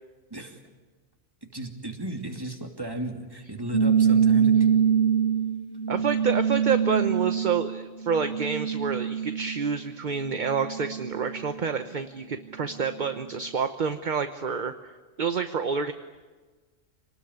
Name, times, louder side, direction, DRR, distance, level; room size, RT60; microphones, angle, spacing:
voice 1, 1.4-4.7, right 1 dB, 20° right, 3 dB, 2.7 m, -35 dB
sound 1, 3.7-9.8 10.2-11.5, right 7 dB, 65° right, 1.9 m, -24 dB
voice 2, 5.9-14.7 15.2-15.9, right 5 dB, 40° right, 8 dB, 1.0 m, -28 dB
27.0 x 19.5 x 9.6 m, 1.3 s
omnidirectional pair, 1.3 m